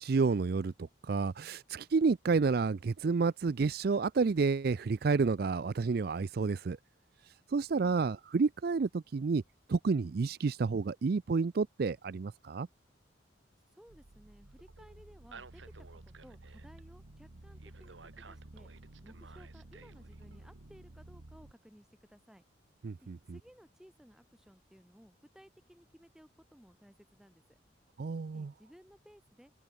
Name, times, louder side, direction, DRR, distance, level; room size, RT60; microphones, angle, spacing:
voice 1, 0.0-6.8 7.5-9.4 9.7-12.7 22.8-23.2 28.0-28.5, right 4 dB, 55° right, 0.4 m, -30 dB
voice 2, 13.7-18.7 19.0-22.4 23.0-27.6 28.3-29.5, equal, 5° right, 3.0 m, -59 dB
sound 1, 13.9-21.5, right 2 dB, 80° right, 1.5 m, -52 dB
head